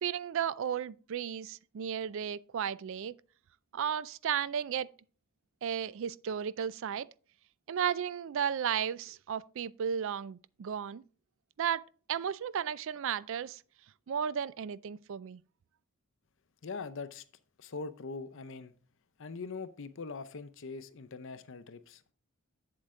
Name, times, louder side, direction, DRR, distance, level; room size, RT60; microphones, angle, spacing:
voice 1, 0.0-3.1 3.7-4.9 5.6-7.1 7.7-11.0 11.6-11.8 12.1-13.6 14.1-15.4, right 8 dB, 65° right, 0.4 m, -34 dB
voice 2, 16.6-17.2 17.6-18.7 19.2-22.1, left 4 dB, 60° left, 0.7 m, -42 dB
7.9 x 7.6 x 3.6 m
head